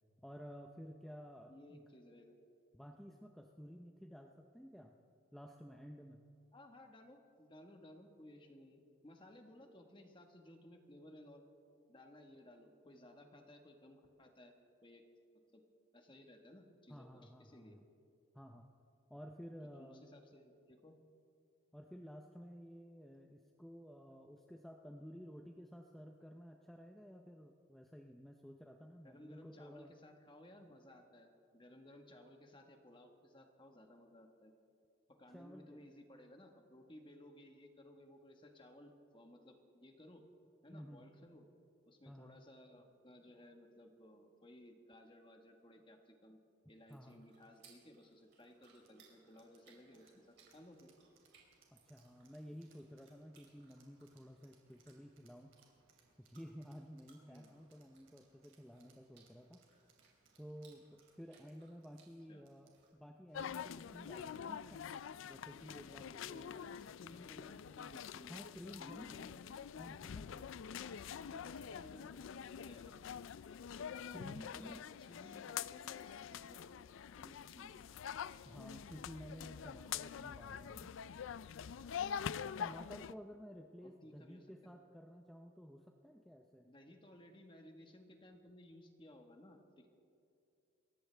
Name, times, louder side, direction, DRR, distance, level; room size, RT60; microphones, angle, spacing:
voice 1, 0.2-1.8 2.7-4.9 5.3-6.2 16.9-17.8 18.3-18.7 19.1-20.0 21.7-29.9 35.3-35.9 40.7-41.0 42.1-42.4 46.9-47.2 51.7-55.5 56.2-59.6 60.4-64.9 65.2-66.6 68.3-69.2 69.8-70.5 74.1-74.8 78.4-80.9 82.6-86.7, equal, ahead, 2 dB, 0.6 m, -53 dB
voice 2, 1.5-2.4 6.5-11.4 11.9-14.5 14.8-15.0 15.5-15.6 15.9-17.8 19.7-21.0 29.0-34.5 35.2-40.2 40.6-41.5 41.8-46.4 46.7-50.9 57.2-57.5 62.3-62.4 66.2-68.4 68.7-69.4 70.7-73.0 74.4-76.8 77.2-77.8 81.1-81.2 83.8-84.5 86.6-90.0, left 1 dB, 25° left, 4 dB, 1.4 m, -59 dB
sound 1, 46.7-62.9, right 5 dB, 55° right, 4.5 m, -71 dB
sound 2, 47.4-63.9, right 4 dB, 75° right, 3.0 m, -73 dB
sound 3, 63.3-83.1, left 8 dB, 70° left, 0.4 m, -46 dB
28.0 x 14.5 x 3.4 m, 2.5 s
head